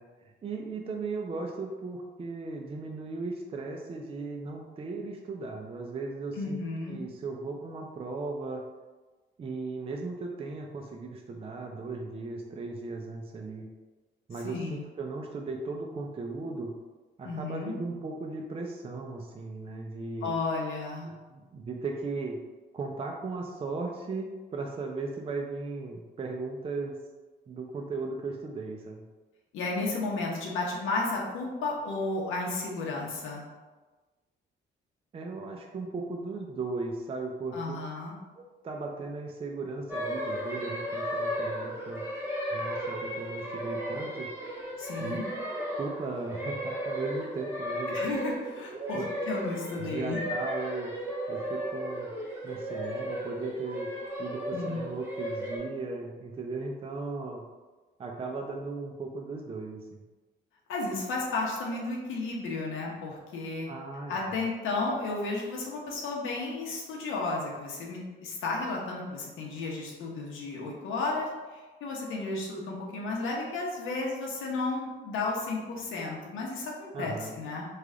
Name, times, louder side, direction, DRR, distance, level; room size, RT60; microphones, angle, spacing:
voice 1, 0.0-6.6 6.9-8.6 9.4-13.7 14.3-16.7 17.2-20.3 21.0-22.4 22.7-27.0 27.5-29.0 35.1-37.6 38.4-42.0 42.5-44.3 45.0-45.2 45.6-48.0 48.7-49.1 49.8-50.9 51.3-52.1 52.4-53.9 54.2-57.4 58.0-60.0 63.7-64.4 76.9-77.3, right 3 dB, 30° right, 1 dB, 0.4 m, -37 dB
voice 2, 6.3-7.0 14.4-14.8 17.2-17.8 20.2-21.1 29.5-33.4 37.5-38.1 44.8-45.2 47.9-50.2 54.5-54.8 60.7-63.7 64.1-77.7, left 3 dB, 85° left, -2 dB, 0.8 m, -33 dB
sound 1, 39.9-55.6, equal, 15° right, 1.5 m, -35 dB
3.2 x 2.3 x 3.6 m, 1.3 s
cardioid pair, 90°, 20 cm